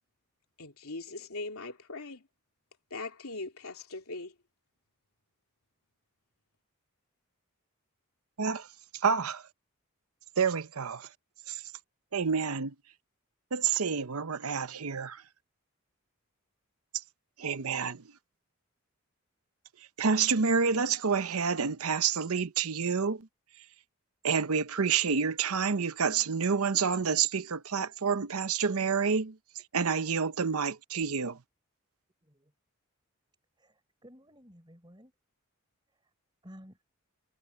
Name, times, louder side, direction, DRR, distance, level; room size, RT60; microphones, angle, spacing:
voice 1, 0.6-2.2 2.9-4.3, left 3 dB, 80° left, 2.9 m, -40 dB
voice 2, 9.0-9.4 10.4-11.1 11.5-11.6 12.1-12.7 13.5-15.2 17.4-18.0 20.0-23.3 24.2-29.4 29.7-31.4, right 6 dB, 80° right, 0.8 m, -28 dB
voice 3, 32.2-32.5 33.6-35.1 36.0-36.1 36.4-36.8, equal, 20° right, 4.2 m, -54 dB
head